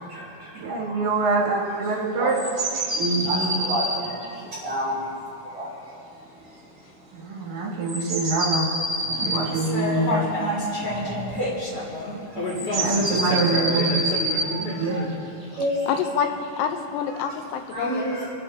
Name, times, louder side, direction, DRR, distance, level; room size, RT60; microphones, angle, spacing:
voice 1, 0.0-1.0 2.2-2.4 3.0-5.1 5.4-5.7 8.9-11.6 12.1-12.6 13.1-13.2 14.3-15.1 15.4-16.0 17.7-18.3, right 1 dB, 50° right, -12 dB, 4.9 m, -31 dB
voice 2, 0.5-2.4 7.1-8.7 9.2-10.3 12.6-14.1 14.6-15.0, right 3 dB, 80° right, -5 dB, 4.9 m, -25 dB
sound 1, 2.3-4.4 7.8-11.1 12.5-14.5 15.4-16.6 17.7-17.8, right 1 dB, 20° right, 3.6 m, -27 dB
sound 2, 9.5-15.1, left 1 dB, 30° left, 2.4 m, -29 dB
voice 3, 15.9-18.3, left 7 dB, 75° left, 6 dB, 2.8 m, -27 dB
29.5 x 10.5 x 2.9 m, 2.6 s
omnidirectional pair, 5.1 m